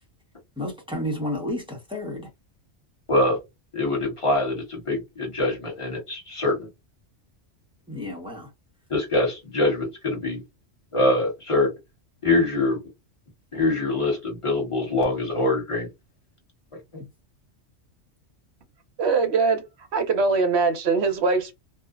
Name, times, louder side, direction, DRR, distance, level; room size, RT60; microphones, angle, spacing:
voice 1, 0.6-2.3 7.9-8.5, left 1 dB, 5° right, 0.6 m, -31 dB
voice 2, 3.1-3.4 3.7-6.7 8.9-10.4 10.9-11.7 12.2-12.8 13.5-15.9, left 2 dB, 25° left, 1.0 m, -24 dB
voice 3, 19.0-19.6 19.9-21.6, right 4 dB, 65° right, 0.9 m, -22 dB
2.7 x 2.1 x 2.3 m
omnidirectional pair, 1.2 m